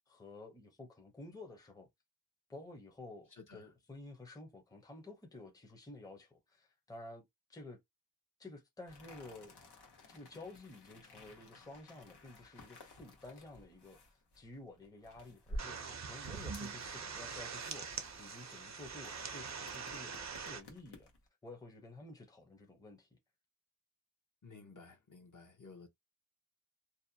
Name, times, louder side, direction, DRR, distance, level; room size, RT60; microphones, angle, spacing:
voice 1, 0.1-1.9 2.5-7.2 7.5-7.8 8.4-9.6 10.1-21.1 21.4-23.2, left 2 dB, 10° left, 0.6 m, -52 dB
voice 2, 3.3-3.7 24.4-25.9, left 4 dB, 50° left, 0.8 m, -55 dB
sound 1, 8.9-21.3, equal, 80° left, 0.9 m, -53 dB
sound 2, 15.6-20.6, right 5 dB, 45° right, 0.5 m, -43 dB
2.7 x 2.1 x 2.6 m
wide cardioid pair, 70°, 39 cm